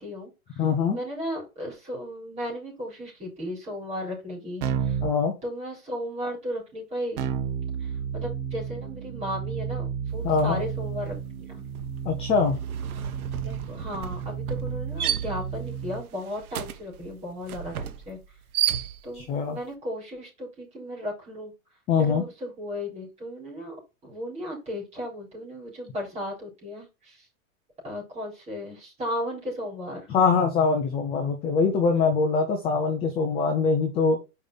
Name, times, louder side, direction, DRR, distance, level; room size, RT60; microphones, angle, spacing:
voice 1, 0.0-0.7 0.9-5.0 5.4-7.2 7.8-11.6 13.4-18.2 19.0-21.5 22.0-23.7 24.0-27.3 27.8-30.1, equal, 15° right, -2 dB, 4.2 m, -35 dB
voice 2, 0.6-1.0 5.0-5.4 10.2-10.6 12.0-12.6 19.1-19.6 21.9-22.2 30.1-34.2, left 5 dB, 15° left, 4 dB, 0.6 m, -23 dB
Keyboard (musical), 4.6-5.2 7.2-16.0, right 8 dB, 45° right, 1.2 m, -32 dB
sound 1, 10.3-10.6 10.9-19.3, right 10 dB, 75° right, 1.1 m, -33 dB
5.5 x 5.1 x 3.9 m, 0.27 s
supercardioid pair, 155°, 44 cm